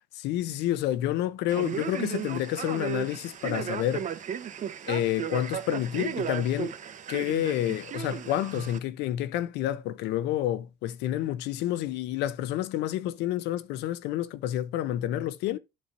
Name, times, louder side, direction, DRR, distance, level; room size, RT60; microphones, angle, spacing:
voice 1, 0.1-4.1 4.9-6.7 7.1-15.6, left 13 dB, 85° left, 0.6 m, -29 dB
Male speech man speaking, 1.5-8.8, right 8 dB, 45° right, 0.9 m, -35 dB
12.5 x 4.3 x 2.6 m
cardioid pair, 110°, 17 cm